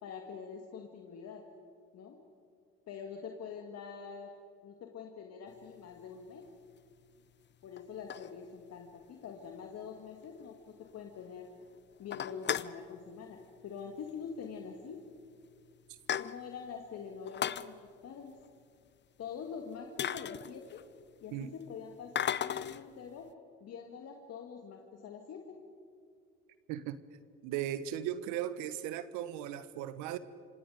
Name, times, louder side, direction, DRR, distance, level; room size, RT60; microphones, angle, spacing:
voice 1, 0.0-1.4 1.9-2.2 2.9-4.3 4.6-6.5 7.6-10.6 10.9-11.5 12.0-15.0 16.2-17.8 18.0-18.4 19.2-20.8 21.2-23.3 23.6-25.6, left 6 dB, 55° left, 2 dB, 2.3 m, -45 dB
sound 1, 5.8-6.0 6.8-6.9 7.8-8.8 9.2-9.3 9.5-9.6 10.0-10.1 10.4-10.5 10.8-11.3 11.6-11.7 12.0-12.8 13.9-14.1 14.4-14.5 15.2-15.3 15.6-16.7 17.2-17.7 19.4-19.5 20.0-21.0 22.1-22.9, left 9 dB, 35° left, 0.7 m, -36 dB
voice 2, 27.4-30.2, right 11 dB, 70° right, 14 dB, 1.2 m, -37 dB
26.5 x 26.0 x 5.2 m, 2.2 s
hypercardioid pair, 65°, 31 cm